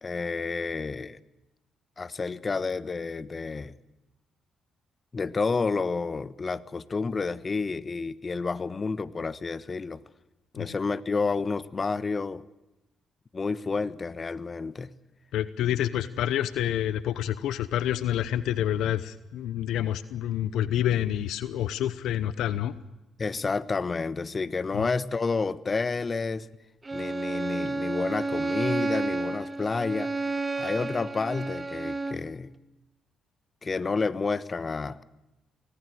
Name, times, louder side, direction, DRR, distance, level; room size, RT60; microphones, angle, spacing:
voice 1, 0.0-1.2 2.0-3.7 5.1-10.0 10.5-12.4 13.3-14.9 23.2-26.5 26.9-30.1 30.6-32.5 33.6-35.0, left 4 dB, 35° left, 17 dB, 1.3 m, -30 dB
voice 2, 15.3-22.8 24.7-24.9, left 11 dB, 75° left, 16 dB, 0.9 m, -28 dB
Bowed string instrument, 26.9-32.3, right 3 dB, 30° right, 1.8 m, -31 dB
25.5 x 18.5 x 8.0 m, 1.0 s
hypercardioid pair, 50°, 0 cm